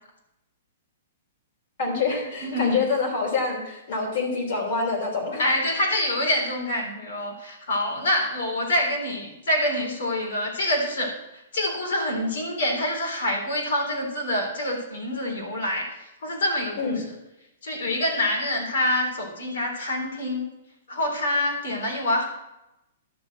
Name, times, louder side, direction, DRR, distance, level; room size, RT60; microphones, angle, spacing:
voice 1, 1.8-5.4 16.8-17.0, left 4 dB, 60° left, 0 dB, 3.2 m, -26 dB
voice 2, 2.4-2.8 5.4-17.0 17.6-20.5 20.9-22.2, left 1 dB, 75° left, 0 dB, 3.7 m, -26 dB
11.5 x 4.1 x 7.9 m, 0.89 s
hypercardioid pair, 140°, 0 cm